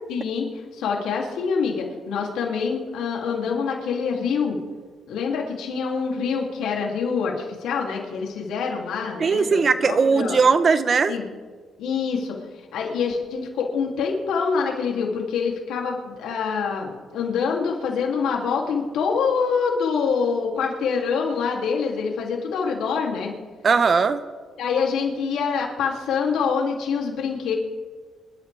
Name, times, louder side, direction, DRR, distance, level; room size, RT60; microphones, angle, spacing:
voice 1, 0.1-4.6 5.1-10.4 11.1-11.2 11.8-12.4 12.7-23.3 24.6-27.5, left 5 dB, 85° left, 0 dB, 2.8 m, -25 dB
voice 2, 9.2-11.1 23.6-24.2, right 5 dB, 45° right, 12 dB, 0.9 m, -19 dB
25.5 x 12.5 x 3.5 m, 1.5 s
cardioid pair, 90°, 0 cm